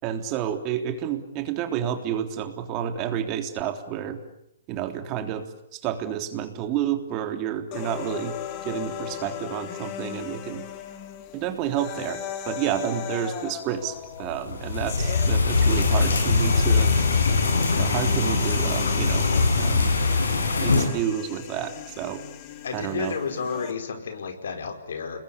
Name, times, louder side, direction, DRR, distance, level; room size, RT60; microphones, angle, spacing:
voice 1, 0.0-4.2 4.7-5.4 5.7-8.3 8.7-10.7 11.3-16.9 17.8-19.3 19.6-19.9 20.6-22.2 22.7-23.1, right 10 dB, 30° right, 7 dB, 3.4 m, -30 dB
sound 1, 7.7-23.7, left 10 dB, 35° left, 3.2 m, -37 dB
sound 2, 14.3-20.8, left 4 dB, 85° left, 7.7 m, -22 dB
voice 2, 22.6-25.2, left 5 dB, 70° left, 7 dB, 4.9 m, -31 dB
29.5 x 21.5 x 8.6 m, 0.79 s
hypercardioid pair, 130°, 0 cm